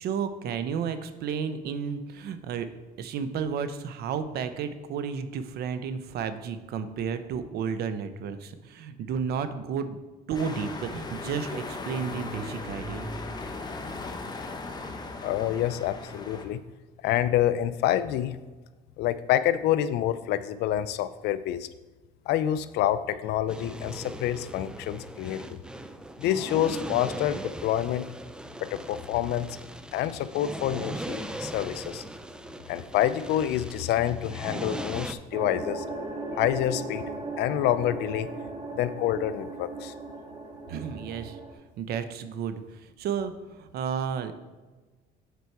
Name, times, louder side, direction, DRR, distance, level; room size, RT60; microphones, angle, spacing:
voice 1, 0.0-2.7 3.0-10.0 10.3-13.1 40.7-41.4 41.8-44.3, right 6 dB, 70° right, 11 dB, 0.7 m, -32 dB
sound 1, 10.3-16.5, left 3 dB, 25° left, 0.9 m, -37 dB
voice 2, 15.2-16.6 17.0-18.4 19.0-21.7 22.3-25.6 26.2-28.1 28.6-29.5 29.9-32.0 32.7-35.8 36.3-37.1 37.4-38.3 38.8-39.9, left 12 dB, 80° left, 14 dB, 0.5 m, -27 dB
sound 2, 23.5-35.1, right 1 dB, 5° right, 0.4 m, -39 dB
sound 3, 35.3-41.5, right 2 dB, 30° right, 1.8 m, -37 dB
8.2 x 4.7 x 4.6 m, 1.2 s
cardioid pair, 110°, 17 cm